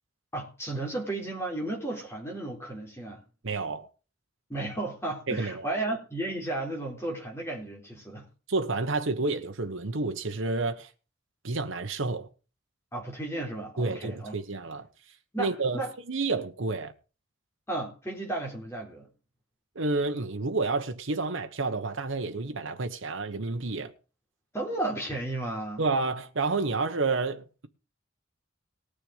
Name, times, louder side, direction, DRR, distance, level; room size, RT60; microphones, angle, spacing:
voice 1, 0.3-3.2 4.5-8.3 12.9-14.3 15.3-15.9 17.7-19.1 24.5-25.8, right 2 dB, 15° left, 3.9 m, -34 dB
voice 2, 3.4-3.9 5.3-5.8 8.5-10.9 11.4-12.3 13.8-14.9 15.4-15.8 16.1-16.9 19.7-23.9 25.8-27.7, right 3 dB, 70° right, 1.0 m, -30 dB
19.0 x 6.8 x 5.0 m
head